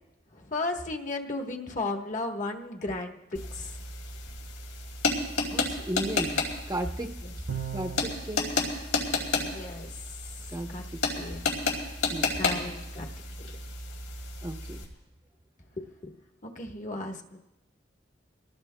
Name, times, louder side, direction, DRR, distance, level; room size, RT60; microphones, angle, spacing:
voice 1, 0.3-3.8 7.2-7.3 9.4-9.9 10.7-10.9 11.2-11.5 12.3-13.1 15.8-16.1 16.4-17.4, left 2 dB, 40° left, 3 dB, 1.2 m, -35 dB
sound 1, 3.3-14.9, left 3 dB, 85° left, 5.0 m, -32 dB
voice 2, 5.5-6.4 6.7-7.1 7.7-8.7 10.5-10.7 12.1-12.6 14.4-14.8, right 1 dB, 20° right, 4 dB, 0.7 m, -34 dB
Bowed string instrument, 7.5-8.4, right 8 dB, 60° right, 0.6 m, -36 dB
26.0 x 19.0 x 2.2 m, 0.98 s
head